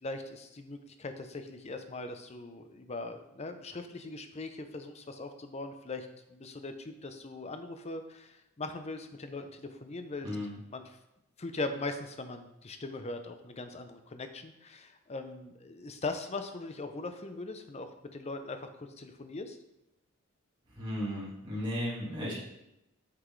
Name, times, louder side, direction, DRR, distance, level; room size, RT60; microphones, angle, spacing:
voice 1, 0.0-10.3 10.7-10.8 11.4-19.6, left 2 dB, 30° left, 8 dB, 0.6 m, -40 dB
voice 2, 10.2-10.6 20.7-22.3, equal, 25° right, -8 dB, 1.9 m, -35 dB
7.8 x 6.0 x 3.2 m, 0.88 s
head